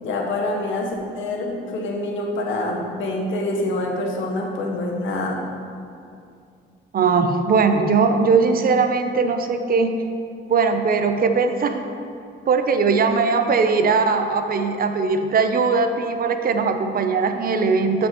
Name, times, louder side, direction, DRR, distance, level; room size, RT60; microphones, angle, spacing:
voice 1, 0.0-5.4, left 2 dB, 80° left, 1 dB, 1.1 m, -26 dB
voice 2, 6.9-9.9 10.5-11.9 12.5-18.1, right 4 dB, 50° right, 7 dB, 0.6 m, -20 dB
12.5 x 5.3 x 3.0 m, 2.4 s
cardioid pair, 90°, 20 cm